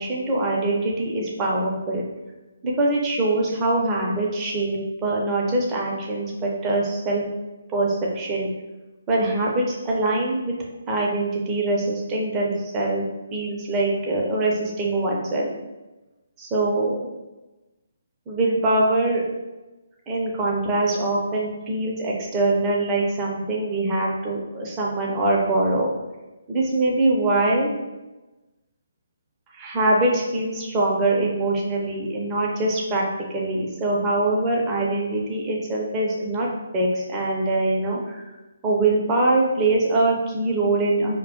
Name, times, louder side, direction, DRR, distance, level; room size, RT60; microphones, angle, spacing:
voice 1, 0.0-2.0 2.6-7.2 7.7-8.5 9.1-10.5 10.9-13.0 13.3-15.5 16.4-17.1 18.3-19.2 20.1-25.9 26.5-27.7 29.5-33.0 33.3-36.5 36.7-38.2 38.6-41.2, right 2 dB, 20° right, -3 dB, 0.4 m, -23 dB
2.2 x 2.1 x 2.7 m, 1.1 s
figure-of-eight pair, 140°, 0 cm